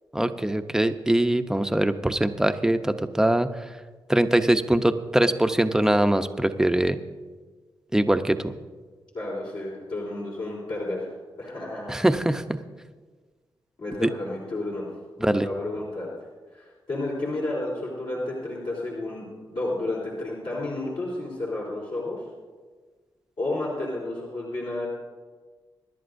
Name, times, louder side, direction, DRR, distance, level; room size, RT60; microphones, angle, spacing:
voice 1, 0.1-3.5 4.1-7.0 7.9-8.5 11.9-12.6 14.0-14.1 15.2-15.5, right 1 dB, 5° right, 8 dB, 0.7 m, -22 dB
voice 2, 9.1-11.9 13.8-14.9 15.2-16.1 16.5-22.2 23.4-24.9, left 2 dB, 65° left, -7 dB, 3.9 m, -31 dB
25.0 x 11.0 x 2.6 m, 1.4 s
cardioid pair, 70°, 9 cm